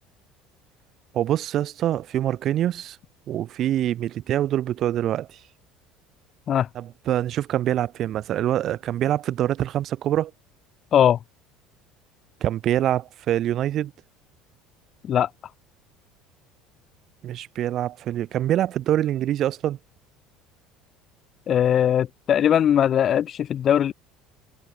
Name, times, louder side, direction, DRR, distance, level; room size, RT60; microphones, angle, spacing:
voice 1, 1.1-3.0 3.3-5.4 6.7-10.3 12.4-13.9 17.2-19.8, right 12 dB, 50° right, 2.6 m, -25 dB
voice 2, 21.5-23.9, left 9 dB, 40° left, 0.4 m, -20 dB
cardioid pair, 125°, 0 cm